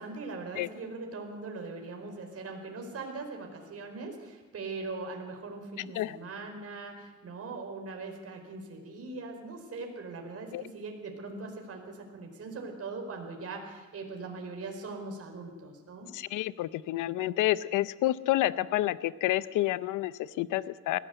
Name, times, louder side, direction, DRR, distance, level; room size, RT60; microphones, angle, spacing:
voice 1, 0.0-16.1, right 3 dB, 50° right, 3 dB, 4.7 m, -41 dB
voice 2, 16.1-21.0, left 15 dB, 90° left, 16 dB, 0.8 m, -29 dB
21.0 x 16.0 x 8.1 m, 1.3 s
cardioid pair, 90°, 30 cm